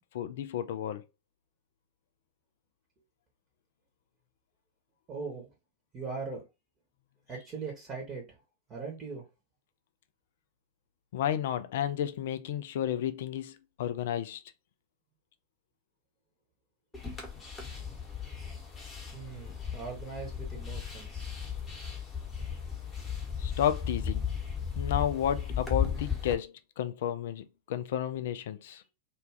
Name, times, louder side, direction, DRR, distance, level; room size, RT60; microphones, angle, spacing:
voice 1, 0.1-1.0 11.1-14.4 23.4-24.2 24.8-28.8, left 10 dB, 55° left, 0.3 m, -32 dB
voice 2, 5.1-5.5 5.9-6.5 7.3-8.3 8.7-9.3 19.1-21.3, right 4 dB, 30° right, 0.9 m, -40 dB
sound 1, 16.9-26.3, left 7 dB, 15° left, 1.0 m, -35 dB
2.4 x 2.2 x 3.2 m
figure-of-eight pair, 90°, 0 cm